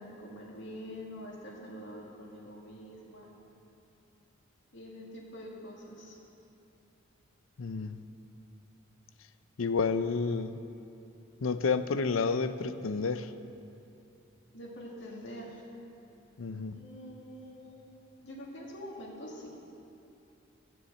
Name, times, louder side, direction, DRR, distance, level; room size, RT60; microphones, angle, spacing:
voice 1, 0.0-3.3 4.7-6.2 14.5-15.6 16.7-19.5, equal, 60° left, -3 dB, 2.2 m, -45 dB
voice 2, 7.6-8.0 9.6-10.6 11.4-13.3 16.4-16.8, left 4 dB, 80° left, 12 dB, 0.5 m, -30 dB
14.0 x 7.1 x 7.9 m, 2.8 s
head